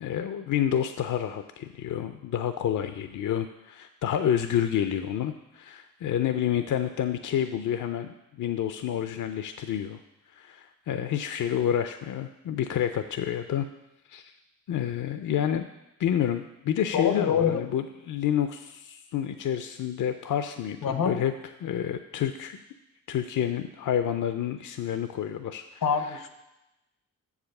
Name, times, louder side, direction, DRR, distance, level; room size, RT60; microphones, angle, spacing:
voice 1, 0.0-8.1 8.4-10.0 10.3-13.7 14.1-14.3 14.7-15.6 16.0-21.3 21.6-22.6 23.1-25.8, left 10 dB, 65° left, 8 dB, 0.5 m, -29 dB
voice 2, 16.9-17.6 20.8-21.1 25.8-26.3, left 7 dB, 90° left, 8 dB, 0.9 m, -25 dB
6.9 x 4.9 x 6.5 m, 0.95 s
cardioid pair, 60°, 33 cm